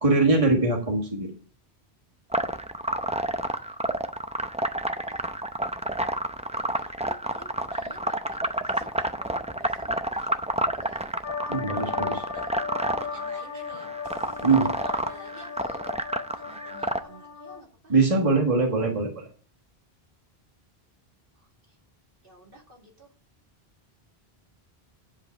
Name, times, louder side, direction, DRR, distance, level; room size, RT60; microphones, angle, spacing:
voice 1, 0.0-1.3 11.5-12.2 14.4-14.7 17.9-19.3, right 3 dB, 35° right, 1 dB, 1.8 m, -22 dB
sound 1, 2.3-17.0, right 1 dB, 10° right, 0.4 m, -29 dB
voice 2, 6.5-10.3 10.8-11.0 11.4-11.9 12.3-12.5 12.8-13.9 14.5-15.8 16.3-17.9 21.4-21.5 22.2-23.1, right 1 dB, 60° right, 0 dB, 2.4 m, -49 dB
sound 2, 11.2-17.6, left 6 dB, 55° left, 0.8 m, -36 dB
10.5 x 5.2 x 5.8 m, 0.38 s
omnidirectional pair, 1.1 m